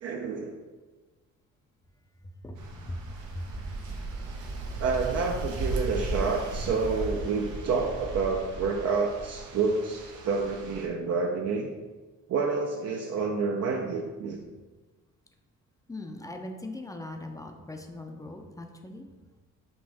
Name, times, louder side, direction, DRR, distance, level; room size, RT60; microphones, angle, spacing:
voice 1, 0.0-0.6 4.8-11.7 12.3-14.4, right 4 dB, 55° right, 0 dB, 0.5 m, -28 dB
voice 2, 2.4-3.0 3.3-3.7 15.9-19.1, left 1 dB, 10° left, 4 dB, 0.4 m, -40 dB
sound 1, 2.6-10.9, right 2 dB, 85° right, 0.8 m, -36 dB
5.3 x 2.5 x 3.4 m, 1.3 s
cardioid pair, 90°, 30 cm